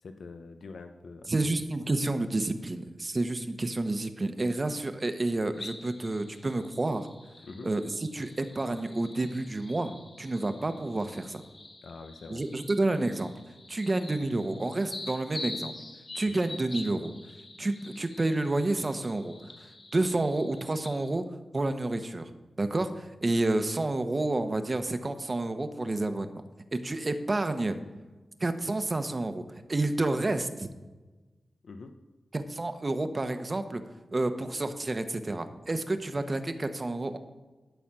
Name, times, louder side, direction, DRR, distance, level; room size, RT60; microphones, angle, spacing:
voice 1, 0.0-1.3 7.4-7.7 11.8-12.4 16.2-16.4 19.5-19.6 31.6-31.9, left 4 dB, 75° left, 7 dB, 0.7 m, -45 dB
voice 2, 1.3-7.1 7.6-11.4 12.3-13.3 13.7-15.7 16.1-17.1 17.6-19.3 19.9-21.2 21.5-22.3 22.6-26.4 26.7-27.8 28.4-29.4 29.7-30.7 32.3-33.8 34.1-37.2, right 2 dB, 40° right, 9 dB, 1.0 m, -29 dB
sound 1, 5.5-21.1, left 2 dB, 50° left, 2.4 m, -46 dB
12.5 x 4.2 x 7.5 m, 1.2 s
cardioid pair, 45°, 0 cm